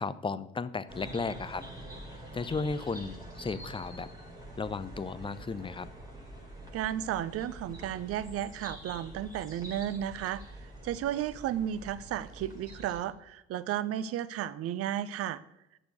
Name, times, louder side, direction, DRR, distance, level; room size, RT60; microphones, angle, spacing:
voice 1, 0.0-1.6 2.3-4.1 4.6-5.9, left 4 dB, 15° left, 16 dB, 0.6 m, -34 dB
sound 1, 0.9-13.0, right 1 dB, 10° right, 3.9 m, -46 dB
voice 2, 6.7-10.4 10.8-15.4, right 11 dB, 45° right, 15 dB, 0.7 m, -33 dB
12.0 x 6.9 x 6.4 m, 0.88 s
figure-of-eight pair, 50°, 33 cm